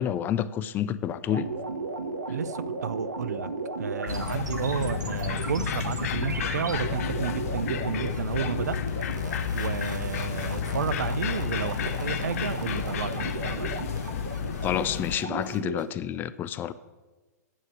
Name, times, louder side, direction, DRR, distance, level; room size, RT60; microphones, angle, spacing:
voice 1, 0.0-1.5 14.6-16.7, left 10 dB, 20° left, 0.4 m, -29 dB
sound 1, 1.3-15.8, right 3 dB, 85° right, 1.4 m, -36 dB
voice 2, 2.3-3.5 3.8-8.8 9.5-13.7, right 7 dB, 70° right, 0.6 m, -32 dB
sound 2, 4.1-15.2, left 7 dB, 55° left, 0.7 m, -31 dB
9.3 x 6.4 x 8.5 m
figure-of-eight pair, 115°, 9 cm